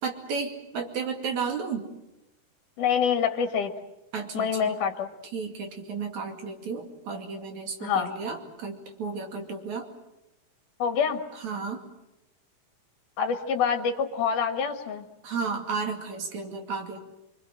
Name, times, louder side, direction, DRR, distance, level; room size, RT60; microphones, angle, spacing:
voice 1, 0.0-1.9 4.1-4.7 5.3-9.9 11.3-11.8 15.2-17.0, right 5 dB, 60° right, 4 dB, 3.7 m, -33 dB
voice 2, 2.8-3.7 4.3-5.1 7.8-8.1 10.8-11.2 13.2-15.0, left 7 dB, 65° left, 6 dB, 3.1 m, -26 dB
25.5 x 24.0 x 7.7 m, 0.92 s
omnidirectional pair, 3.9 m